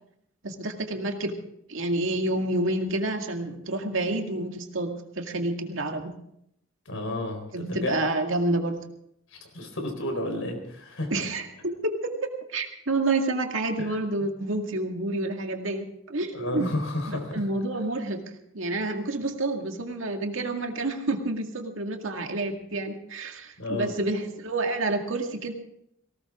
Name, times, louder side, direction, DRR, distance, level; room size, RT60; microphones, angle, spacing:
voice 1, 0.4-1.3 1.7-6.2 7.5-8.8 11.1-16.7 17.1-18.2 18.5-25.5, right 2 dB, 75° right, 4 dB, 2.1 m, -29 dB
voice 2, 6.9-7.9 9.3-11.1 13.8-14.0 16.3-17.4 23.6-23.9, left 1 dB, 80° left, 4 dB, 4.1 m, -31 dB
18.5 x 18.0 x 3.7 m, 0.75 s
head